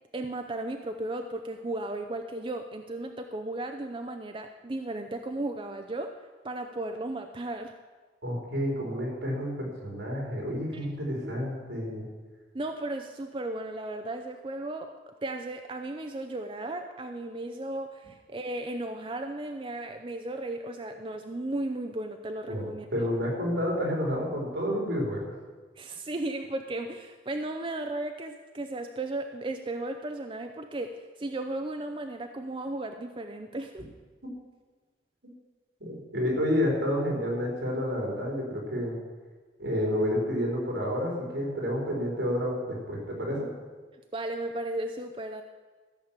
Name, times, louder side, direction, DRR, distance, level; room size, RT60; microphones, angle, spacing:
voice 1, 0.1-6.2 6.4-7.7 10.7-10.9 11.2-11.4 12.5-14.9 15.2-23.1 25.8-33.9 44.1-45.4, right 2 dB, 30° right, 6 dB, 0.5 m, -35 dB
voice 2, 8.2-12.0 22.5-22.7 22.9-25.2 34.2-34.3 35.8-38.9 39.6-43.5, equal, 75° right, -2 dB, 4.2 m, -29 dB
14.0 x 6.8 x 7.4 m, 1.4 s
head